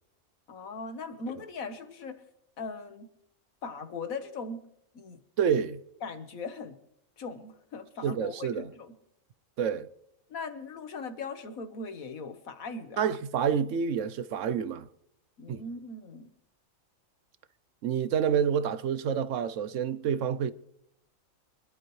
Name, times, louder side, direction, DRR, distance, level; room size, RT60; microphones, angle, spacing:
voice 1, 0.5-2.2 2.6-3.1 3.6-4.6 4.9-5.2 6.0-6.8 7.2-8.9 10.3-13.0 15.4-16.3, left 4 dB, 80° left, 1.7 m, -39 dB
voice 2, 5.4-5.8 8.0-8.7 9.6-9.9 13.0-14.9 15.5-15.6 17.8-20.5, right 8 dB, 70° right, 0.9 m, -28 dB
25.5 x 11.5 x 3.2 m
omnidirectional pair, 1.4 m